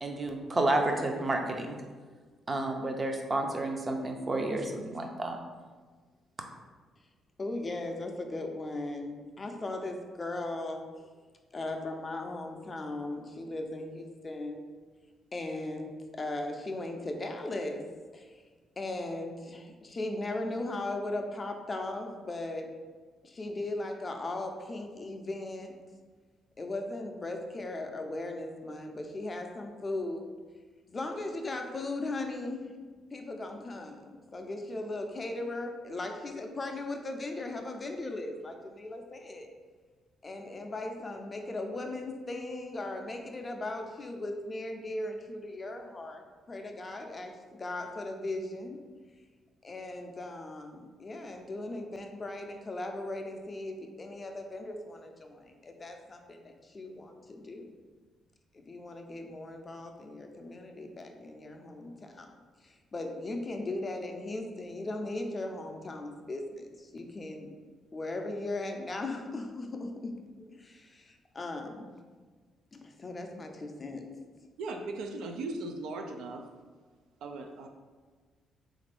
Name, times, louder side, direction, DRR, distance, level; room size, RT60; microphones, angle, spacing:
voice 1, 0.0-1.8 2.5-5.4, right 2 dB, 30° right, 3 dB, 0.5 m, -30 dB
voice 2, 7.4-11.1 11.5-14.6 15.3-17.9 18.1-18.4 18.8-22.7 23.2-25.7 26.6-30.3 30.9-32.7 33.1-39.5 40.2-47.3 47.6-48.8 49.6-57.7 58.5-62.3 62.6-67.5 67.9-72.0 72.7-74.1, left 2 dB, 30° left, 4 dB, 0.4 m, -38 dB
voice 3, 74.6-76.5 77.2-77.7, right 2 dB, 80° right, 4 dB, 0.3 m, -38 dB
3.5 x 2.5 x 3.3 m, 1.5 s
cardioid pair, 90°, 0 cm